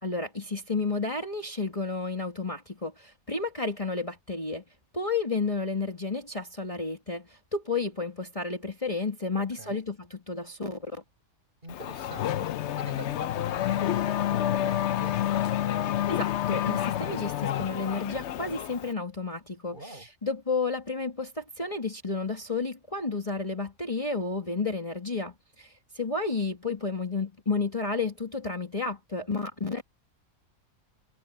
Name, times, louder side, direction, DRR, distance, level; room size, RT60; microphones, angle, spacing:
voice 1, 0.0-4.6 4.9-10.9 16.1-29.8, left 3 dB, 25° left, 2.1 m, -31 dB
voice 2, 11.6-15.4 19.7-20.1, right 1 dB, 35° right, 7.1 m, -44 dB
Race car auto racing / Accelerating revving vroom, 11.7-18.9, left 11 dB, 60° left, 0.8 m, -29 dB
omnidirectional pair, 1.4 m